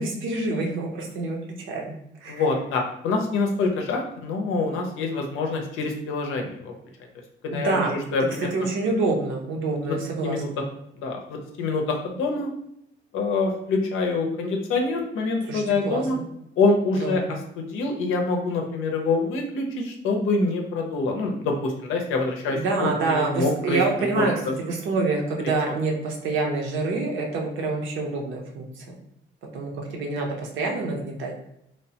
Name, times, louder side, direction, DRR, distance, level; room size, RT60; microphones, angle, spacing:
voice 1, 0.0-2.4 7.5-7.9 8.4-10.6 15.5-16.2 16.9-17.3 22.5-24.3 24.7-29.0 29.5-31.3, right 3 dB, 80° right, 0 dB, 0.7 m, -27 dB
voice 2, 2.3-6.7 7.4-8.5 9.9-10.0 10.2-10.5 11.0-12.5 13.1-16.2 16.6-17.2 17.6-23.8 24.1-24.5, left 3 dB, 85° left, 2 dB, 0.6 m, -25 dB
3.0 x 2.1 x 2.8 m, 0.78 s
cardioid pair, 90°, 20 cm